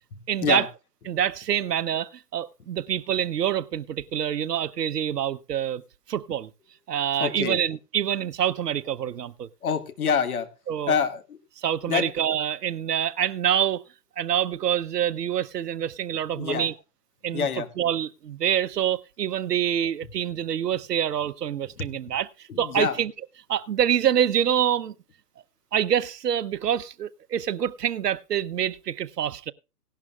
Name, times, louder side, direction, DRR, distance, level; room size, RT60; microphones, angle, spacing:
voice 1, 0.3-0.7 1.1-5.8 6.1-6.5 6.9-9.5 10.7-10.9 11.6-13.8 14.2-16.7 17.2-17.5 17.8-22.3 22.6-23.1 23.5-24.9 25.7-29.5, right 10 dB, 70° right, 0.8 m, -26 dB
voice 2, 7.2-7.6 9.6-10.5 10.9-11.4 11.9-12.1 16.3-16.7 17.3-17.7 21.8-21.9 22.5-23.0, left 6 dB, 60° left, 1.8 m, -26 dB
17.0 x 11.5 x 2.4 m
hypercardioid pair, 155°, 50 cm